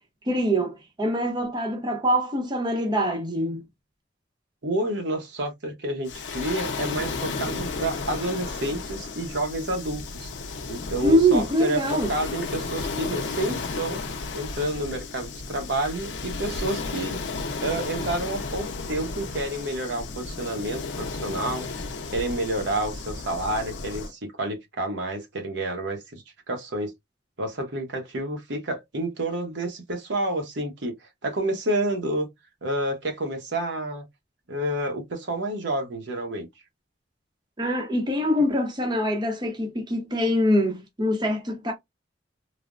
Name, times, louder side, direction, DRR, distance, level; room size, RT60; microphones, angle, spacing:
voice 1, 0.2-3.6 11.0-12.1 37.6-41.7, equal, 25° right, 0.7 m, -24 dB
voice 2, 4.6-10.3 10.7-14.0 14.3-17.2 17.6-21.7 22.1-26.0 26.5-26.9 27.4-31.0 31.2-32.3 32.6-34.0 34.5-36.5, right 1 dB, 70° right, 0.9 m, -29 dB
Waves surf, 6.1-24.1, left 3 dB, 75° left, 0.6 m, -33 dB
3.3 x 2.0 x 2.4 m
head